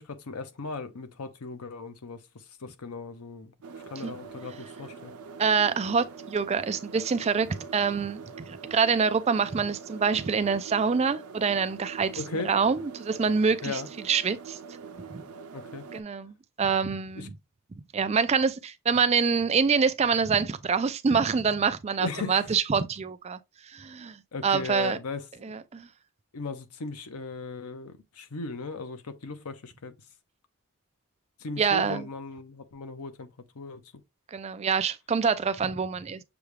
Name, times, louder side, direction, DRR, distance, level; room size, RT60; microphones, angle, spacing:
voice 1, 0.0-3.5 3.9-5.1 12.2-12.5 13.6-13.9 15.5-15.8 17.1-17.3 22.0-22.5 24.3-25.6 26.3-29.9 31.4-33.3 33.5-33.8, left 3 dB, 90° left, 0.8 m, -37 dB
sound 1, 3.6-16.0, right 5 dB, 85° right, 0.6 m, -44 dB
voice 2, 5.4-13.8 14.1-14.6 15.1-15.2 15.9-17.3 17.9-23.4 23.7-25.0 25.4-25.9 31.6-32.0 34.3-36.2, right 5 dB, 30° right, 0.4 m, -26 dB
6.8 x 2.3 x 3.2 m
head